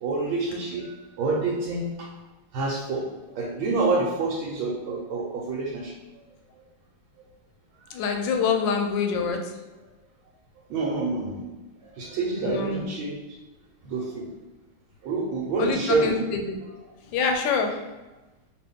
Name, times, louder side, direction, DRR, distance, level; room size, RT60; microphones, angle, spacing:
voice 1, 0.0-1.9 2.5-3.0 3.4-5.9 8.5-8.6 10.7-11.4 12.0-13.1 13.8-14.2 15.0-16.3, right 3 dB, 85° right, -3 dB, 1.5 m, -27 dB
voice 2, 7.9-9.4 12.4-12.9 15.6-16.6 17.1-17.8, left 5 dB, 75° left, 4 dB, 1.2 m, -25 dB
3.0 x 2.8 x 3.4 m, 1.1 s
omnidirectional pair, 2.2 m